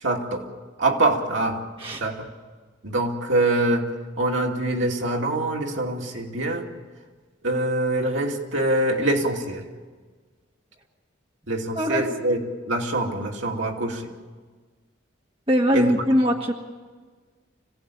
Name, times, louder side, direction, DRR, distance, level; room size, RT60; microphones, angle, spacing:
voice 1, 0.0-0.5 0.8-1.6 2.0-2.3 2.8-3.9 4.2-6.7 7.4-9.6 11.5-12.4 12.7-14.1 15.7-15.9, right 2 dB, 75° right, 1 dB, 2.6 m, -24 dB
voice 2, 11.7-12.1 15.5-16.5, equal, 25° right, 1 dB, 1.6 m, -21 dB
26.0 x 17.0 x 8.6 m, 1.5 s
head